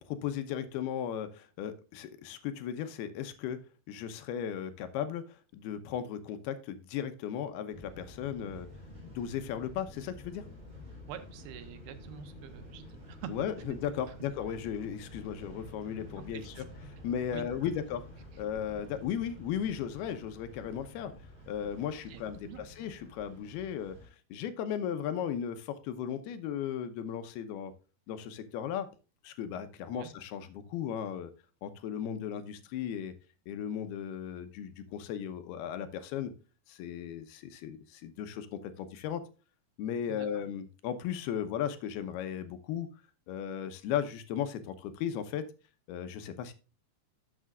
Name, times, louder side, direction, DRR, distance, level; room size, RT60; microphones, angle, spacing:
voice 1, 0.0-3.6 3.9-8.7 9.1-10.4 13.3-16.5 17.0-18.0 18.4-21.1 21.5-24.0 24.3-27.7 28.1-28.9 29.2-31.3 31.6-33.1 33.5-36.3 36.7-39.2 39.8-42.9 43.3-45.4 45.9-46.5, left 9 dB, 90° left, 9 dB, 2.9 m, -36 dB
sound 1, 7.7-24.1, left 1 dB, 15° right, 3.6 m, -49 dB
voice 2, 11.1-13.3 13.6-13.8 14.1-14.2 16.3-16.6 16.9-17.0 17.3-17.7 22.1-22.6 29.9-30.1 40.1-40.3, right 10 dB, 80° right, 10 dB, 2.9 m, -46 dB
12.5 x 7.3 x 2.4 m, 0.33 s
omnidirectional pair, 4.4 m